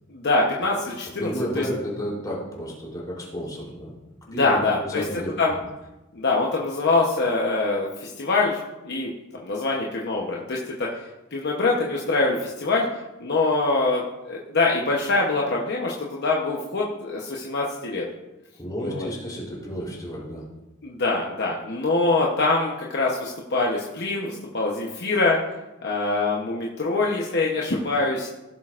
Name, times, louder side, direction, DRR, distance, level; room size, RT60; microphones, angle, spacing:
voice 1, 0.1-1.6 4.4-5.0 5.4-5.5 6.1-9.1 9.4-10.9 11.3-12.8 13.2-18.0 18.8-19.1 20.8-25.4 25.8-28.3, left 3 dB, 55° left, -2 dB, 0.9 m, -24 dB
voice 2, 1.2-3.9 4.3-5.4 18.6-20.4, equal, 20° left, -4 dB, 3.3 m, -32 dB
16.0 x 7.6 x 2.5 m, 1.0 s
head